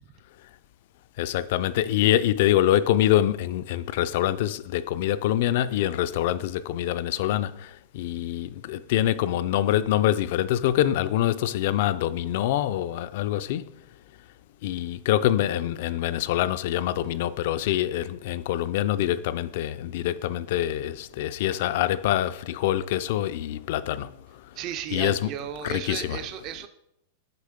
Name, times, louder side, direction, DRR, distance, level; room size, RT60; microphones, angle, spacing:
voice 1, 1.2-13.6 14.6-24.1 24.9-25.3 25.6-26.2, left 12 dB, 50° left, 0.3 m, -25 dB
voice 2, 24.5-26.7, right 10 dB, 30° right, 0.4 m, -34 dB
6.7 x 4.9 x 5.0 m
supercardioid pair, 175°, 0 cm